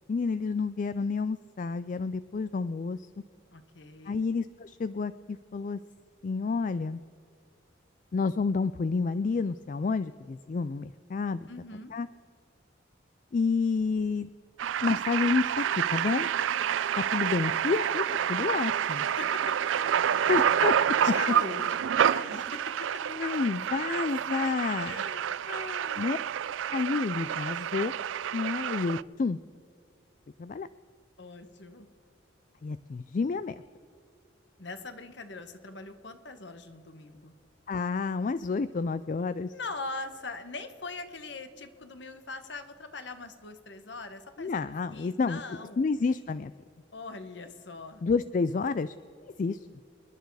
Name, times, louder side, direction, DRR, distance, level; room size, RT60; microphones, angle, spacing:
voice 1, 0.1-3.1 4.1-5.8 6.2-7.0 8.1-11.5 11.9-12.1 13.3-14.3 14.8-16.3 17.0-18.0 18.3-19.1 20.3-20.8 23.1-25.0 26.0-26.2 26.7-27.9 28.3-29.4 30.4-30.7 32.6-33.6 37.7-39.5 44.4-45.4 45.8-46.5 48.0-48.9 49.4-49.6, left 4 dB, 40° left, 14 dB, 0.3 m, -29 dB
voice 2, 3.5-4.2 11.5-11.9 18.8-18.9 19.2-19.6 20.7-22.9 24.8-26.2 31.2-31.9 34.6-37.3 39.5-44.6 44.9-45.8 46.9-48.0, left 3 dB, 65° left, 9 dB, 1.4 m, -41 dB
sound 1, 14.6-29.0, right 9 dB, 80° right, 0.4 m, -28 dB
28.0 x 10.5 x 4.8 m, 2.3 s
head